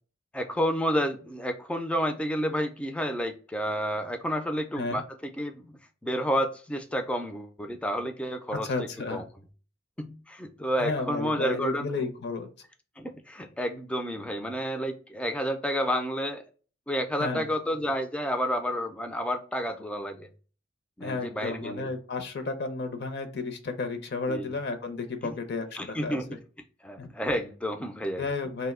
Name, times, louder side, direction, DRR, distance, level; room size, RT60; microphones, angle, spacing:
voice 1, 0.3-5.7 6.0-8.7 9.1-9.2 10.0-11.8 13.0-16.4 16.9-20.3 21.0-21.9 24.3-24.5 25.2-25.4 25.7-26.4 26.8-28.3, equal, 5° left, 6 dB, 0.3 m, -30 dB
voice 2, 8.6-9.2 10.8-12.5 17.2-17.4 21.0-26.2 27.0-27.1 28.2-28.7, left 3 dB, 60° left, 8 dB, 0.5 m, -32 dB
2.5 x 2.0 x 3.5 m, 0.38 s
head